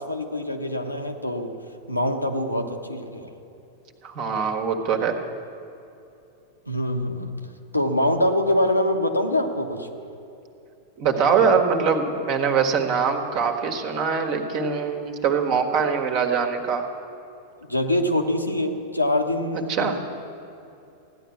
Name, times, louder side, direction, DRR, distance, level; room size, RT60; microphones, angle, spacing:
voice 1, 0.0-1.5 1.9-3.3 6.7-7.3 7.7-9.9 17.7-20.0, left 1 dB, 85° left, 3 dB, 1.2 m, -24 dB
voice 2, 4.0-5.2 11.0-16.9 19.7-20.0, right 6 dB, 45° right, 3 dB, 1.5 m, -23 dB
15.5 x 10.0 x 7.2 m, 2.8 s
figure-of-eight pair, 90°, 0 cm